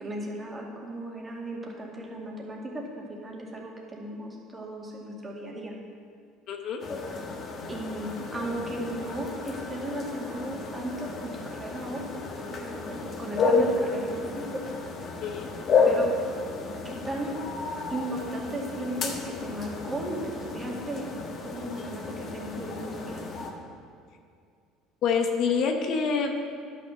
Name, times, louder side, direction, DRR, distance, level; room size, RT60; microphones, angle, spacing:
voice 1, 0.0-5.7 7.7-12.1 12.5-14.6 15.8-16.1 16.7-17.4 17.9-23.3, right 1 dB, 20° right, -2 dB, 2.2 m, -36 dB
voice 2, 6.5-6.8 15.2-15.5 25.0-26.3, left 5 dB, 60° left, 3 dB, 1.0 m, -26 dB
sound 1, 6.8-23.5, left 4 dB, 45° left, 1.4 m, -31 dB
11.0 x 6.5 x 6.5 m, 2.2 s
supercardioid pair, 105°, 0 cm